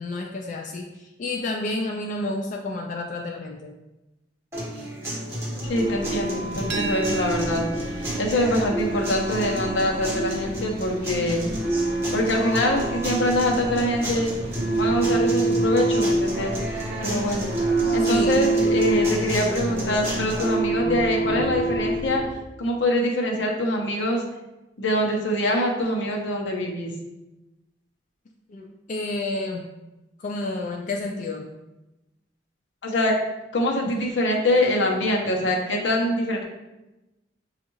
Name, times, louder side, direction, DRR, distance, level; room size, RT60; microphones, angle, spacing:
voice 1, 0.0-3.7 18.0-18.4 28.5-29.7 30.2-31.5 33.9-34.0, left 2 dB, 45° left, 1 dB, 0.3 m, -30 dB
sound 1, 4.5-20.5, equal, 15° right, 1.1 m, -31 dB
voice 2, 5.6-11.4 12.1-14.3 14.8-16.5 17.0-17.5 17.9-22.2 22.6-24.2 24.8-26.9 32.8-33.1 33.5-36.4, left 1 dB, 80° left, 0 dB, 0.8 m, -24 dB
sound 2, 5.7-22.3, right 2 dB, 50° right, 0.9 m, -27 dB
sound 3, 6.7-12.4, right 3 dB, 90° right, 0.7 m, -37 dB
6.2 x 2.4 x 3.0 m, 1.0 s
head